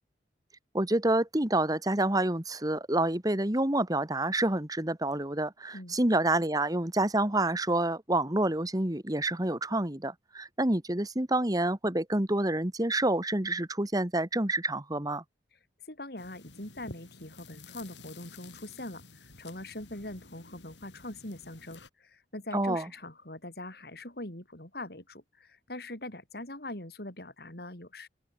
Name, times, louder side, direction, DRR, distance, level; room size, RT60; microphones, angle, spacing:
voice 1, 0.7-15.2 22.5-22.8, right 1 dB, 20° right, 1.9 m, -28 dB
voice 2, 15.8-28.1, left 1 dB, 60° left, 5.4 m, -42 dB
sound 1, 16.2-21.9, left 3 dB, 90° left, 6.6 m, -51 dB
open air
head